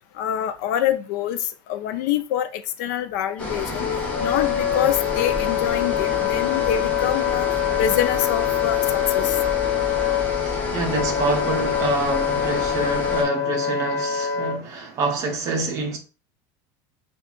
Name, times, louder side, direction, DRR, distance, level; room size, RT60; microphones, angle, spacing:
voice 1, 0.2-3.9 4.2-7.5 7.8-9.4, left 10 dB, 65° left, 0.4 m, -26 dB
sound 1, 3.4-13.2, left 2 dB, 10° left, 0.7 m, -30 dB
Wind instrument woodwind instrument, 3.7-14.6, left 11 dB, 85° left, 1.0 m, -24 dB
voice 2, 10.7-16.0, right 3 dB, 30° right, 0.7 m, -26 dB
5.1 x 2.3 x 2.4 m
cardioid pair, 180°, 10 cm